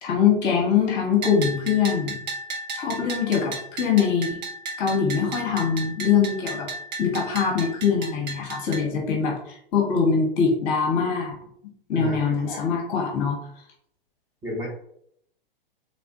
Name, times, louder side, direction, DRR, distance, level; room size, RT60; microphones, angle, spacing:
voice 1, 0.0-2.2 2.7-4.4 4.8-6.7 7.0-11.3 11.9-13.4, left 6 dB, 35° left, 0 dB, 0.8 m, -23 dB
Bell, 1.2-8.8, right 3 dB, 50° right, 0.5 m, -34 dB
voice 2, 11.9-12.7 14.4-14.7, equal, 15° right, -4 dB, 0.7 m, -33 dB
3.2 x 2.1 x 2.7 m, 0.68 s
figure-of-eight pair, 105°, 29 cm